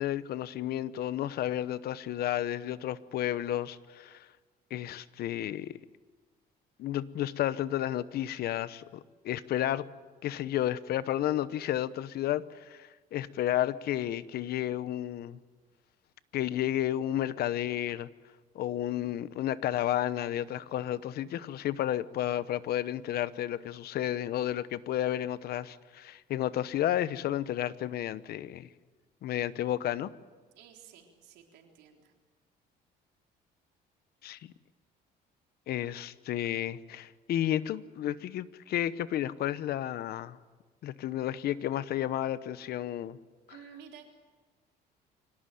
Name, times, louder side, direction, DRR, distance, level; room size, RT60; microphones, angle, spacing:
voice 1, 0.0-4.3 4.7-5.7 6.8-9.9 10.2-15.4 16.3-18.1 18.5-28.7 29.2-30.1 34.2-34.5 35.7-40.4 40.8-43.2, left 12 dB, 70° left, 1.0 m, -32 dB
voice 2, 30.6-32.1 43.5-44.1, right 8 dB, 85° right, 3.9 m, -52 dB
25.0 x 18.0 x 9.3 m
cardioid pair, 110°, 17 cm